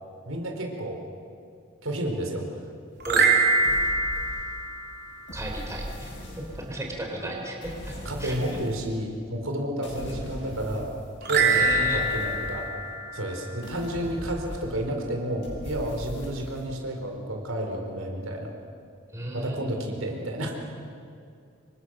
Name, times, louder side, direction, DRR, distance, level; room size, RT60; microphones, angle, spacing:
voice 1, 0.2-1.0 1.8-2.5 7.2-7.3 8.0-10.9 11.2-12.7 13.1-18.5 19.3-20.5, right 1 dB, 85° right, 2 dB, 4.6 m, -31 dB
sound 1, 3.0-5.5 11.2-13.9, right 3 dB, 55° right, 3.5 m, -25 dB
sound 2, 3.6-4.8 5.3-6.9 7.6-8.9 9.8-11.1 11.4-13.0 13.6-15.0 15.4-16.7, equal, 60° left, 7.8 m, -39 dB
voice 2, 5.3-8.6 9.9-10.3 11.5-12.0 19.1-19.6, right 1 dB, 15° right, 0 dB, 4.0 m, -35 dB
28.5 x 24.5 x 6.7 m, 2.4 s
head